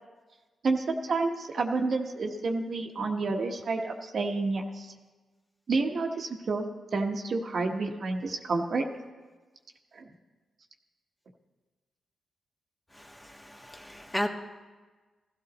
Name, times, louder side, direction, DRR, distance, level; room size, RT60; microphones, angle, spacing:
voice 1, 0.6-4.9 5.7-6.6 6.9-8.9 9.9-10.1, right 3 dB, 60° right, 2 dB, 1.2 m, -29 dB
voice 2, 12.9-14.3, equal, 15° left, 2 dB, 1.5 m, -34 dB
15.0 x 13.0 x 4.2 m, 1.3 s
supercardioid pair, 50°, 0 cm